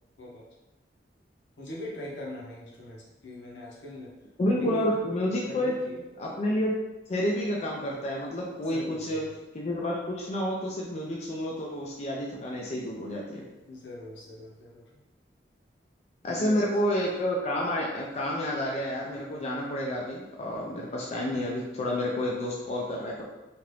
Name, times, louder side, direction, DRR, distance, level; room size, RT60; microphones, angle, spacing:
voice 1, 1.6-4.1 4.5-5.0 5.4-6.0 8.7-9.3 13.3-15.0 16.2-16.6, left 1 dB, 80° left, -4 dB, 0.8 m, -41 dB
voice 2, 4.4-5.7 6.2-6.7 7.1-9.2 9.5-13.5 16.2-23.2, left 1 dB, 40° left, -2 dB, 0.4 m, -29 dB
2.8 x 2.4 x 3.2 m, 1.0 s
head